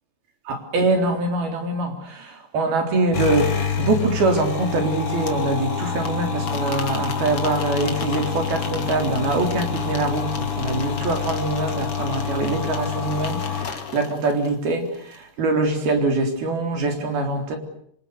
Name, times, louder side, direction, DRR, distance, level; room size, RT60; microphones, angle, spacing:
voice 1, 0.5-17.6, right 2 dB, 65° right, 4 dB, 5.6 m, -24 dB
sound 1, 3.1-14.5, left 6 dB, 40° left, 2.6 m, -27 dB
26.5 x 26.0 x 8.3 m, 0.68 s
omnidirectional pair, 4.9 m